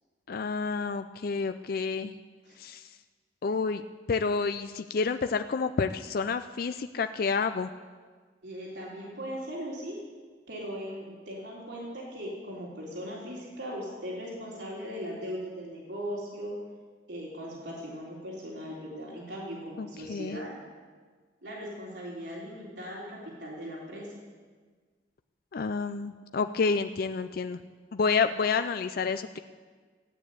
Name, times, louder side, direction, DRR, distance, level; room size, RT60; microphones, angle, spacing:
voice 1, 0.3-2.1 2.6-2.8 3.4-3.8 4.1-7.7 19.8-20.4 25.5-27.6 27.9-29.4, left 5 dB, 55° left, 9 dB, 0.4 m, -29 dB
voice 2, 8.4-10.0 10.5-16.6 17.1-20.5 21.4-24.1, equal, 75° right, -4 dB, 3.5 m, -39 dB
15.0 x 9.3 x 8.3 m, 1.5 s
head